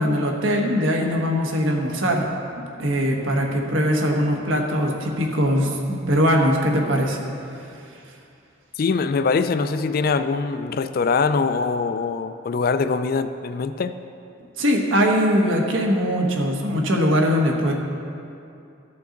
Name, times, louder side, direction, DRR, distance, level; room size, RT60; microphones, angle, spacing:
voice 1, 0.0-2.3 2.8-7.2 14.6-17.7, equal, 75° right, 1 dB, 1.2 m, -21 dB
voice 2, 8.8-14.0, left 4 dB, 45° left, 11 dB, 0.3 m, -23 dB
15.0 x 5.8 x 3.9 m, 2.6 s
head